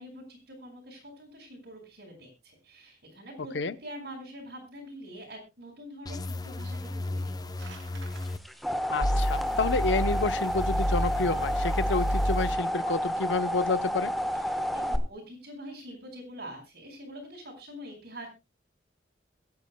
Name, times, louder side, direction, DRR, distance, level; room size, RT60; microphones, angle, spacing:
voice 1, 0.0-8.1 14.5-18.3, equal, 60° right, -2 dB, 4.7 m, -45 dB
sound 1, 6.1-8.4 9.0-12.5, equal, 20° left, 0.7 m, -30 dB
sound 2, 7.3-8.3, right 5 dB, 80° right, 2.5 m, -50 dB
sound 3, 8.3-15.0, equal, ahead, 1.1 m, -30 dB
voice 2, 8.9-14.1, left 3 dB, 75° left, 15 dB, 0.8 m, -29 dB
24.0 x 9.6 x 2.2 m, 0.25 s
head